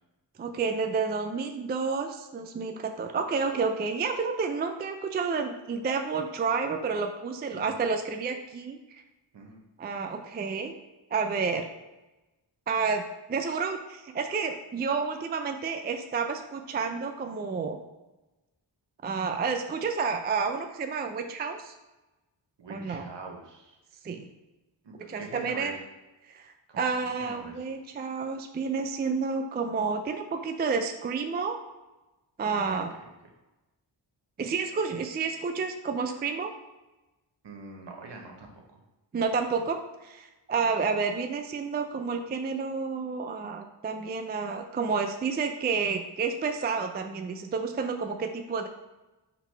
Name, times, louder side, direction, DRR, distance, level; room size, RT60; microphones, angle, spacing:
voice 1, 0.4-9.0 9.8-10.7 11.1-11.7 12.7-13.0 13.3-17.8 19.0-21.7 22.7-23.1 24.0-24.3 25.1-25.8 26.3-31.6 32.4-32.9 34.4-36.5 39.1-48.7, right 5 dB, 25° right, 6 dB, 0.3 m, -30 dB
voice 2, 22.6-23.8 24.8-25.7 26.7-27.6 32.5-32.8 37.4-38.8 40.7-40.8, right 3 dB, 60° right, 2 dB, 1.1 m, -44 dB
4.0 x 2.7 x 4.4 m, 1.1 s
cardioid pair, 55°, 46 cm